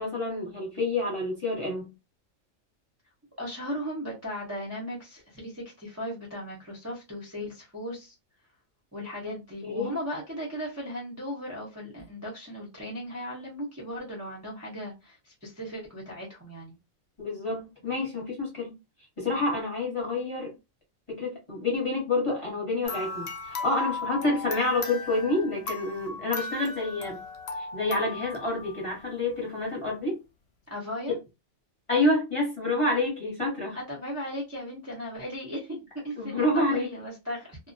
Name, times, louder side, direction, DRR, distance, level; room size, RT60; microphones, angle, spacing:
voice 1, 0.0-1.9 9.6-9.9 17.2-18.7 19.2-20.5 21.1-27.2 27.6-30.2 31.1-31.2 31.9-33.8 36.2-36.9, left 2 dB, 25° left, 0.8 m, -28 dB
voice 2, 3.4-8.1 8.9-16.7 30.7-31.2 33.7-35.8 36.0-37.6, equal, 20° right, 0.5 m, -37 dB
sound 1, 22.8-29.3, left 4 dB, 65° left, 0.7 m, -36 dB
2.3 x 2.1 x 2.6 m
omnidirectional pair, 1.4 m